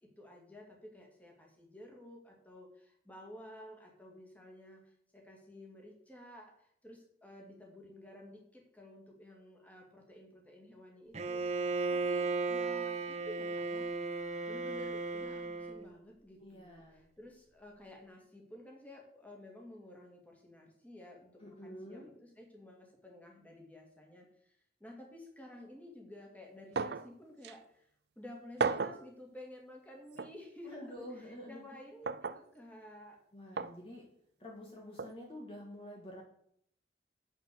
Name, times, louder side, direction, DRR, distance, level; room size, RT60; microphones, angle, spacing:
voice 1, 0.0-13.9 14.5-27.9 28.2-33.2, left 1 dB, 10° left, 0 dB, 2.4 m, -53 dB
Bowed string instrument, 11.1-15.9, right 3 dB, 40° right, 0.8 m, -35 dB
voice 2, 16.4-17.1 21.4-22.1 30.6-31.8 33.3-34.1 34.4-36.2, equal, 30° left, -1 dB, 1.7 m, -48 dB
sound 1, 26.8-27.1 27.4-27.5 28.6-29.0 30.2-30.3 32.1-32.4 33.6-33.8 35.0-35.1, right 4 dB, 65° right, 0.5 m, -34 dB
8.1 x 6.7 x 6.8 m, 0.67 s
head